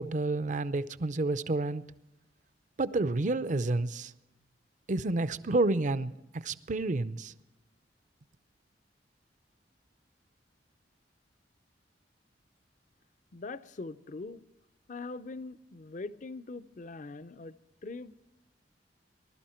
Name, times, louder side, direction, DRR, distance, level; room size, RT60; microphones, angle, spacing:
voice 1, 0.0-1.8 2.8-4.1 4.9-7.3, right 2 dB, 45° right, 15 dB, 0.6 m, -30 dB
voice 2, 13.3-14.4 14.9-17.6 17.8-18.2, left 3 dB, 45° left, 15 dB, 0.6 m, -42 dB
19.5 x 12.5 x 4.4 m, 0.96 s
head